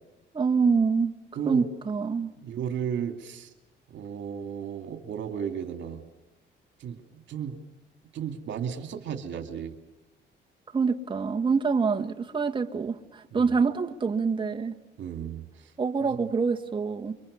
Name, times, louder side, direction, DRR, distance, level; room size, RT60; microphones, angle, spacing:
voice 1, 0.3-1.2 1.5-2.3 10.7-14.8 15.8-17.1, right 5 dB, 25° right, 1.5 m, -26 dB
voice 2, 2.4-3.5 3.9-6.0 6.8-7.7 8.1-9.7 13.3-13.5 15.0-15.7, right 8 dB, 75° right, 2.6 m, -34 dB
29.0 x 24.5 x 6.9 m
cardioid pair, 120°, 19 cm